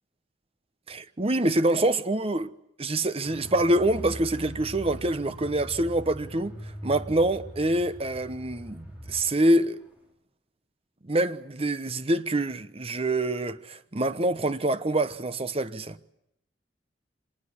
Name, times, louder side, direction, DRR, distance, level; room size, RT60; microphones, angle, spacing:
voice 1, 0.9-2.5 2.8-6.6 6.8-9.8 11.0-16.0, right 1 dB, 35° right, 1.1 m, -26 dB
Car, 3.2-9.4 9.7-9.8, equal, 10° right, 5.4 m, -41 dB
25.5 x 19.5 x 10.0 m
head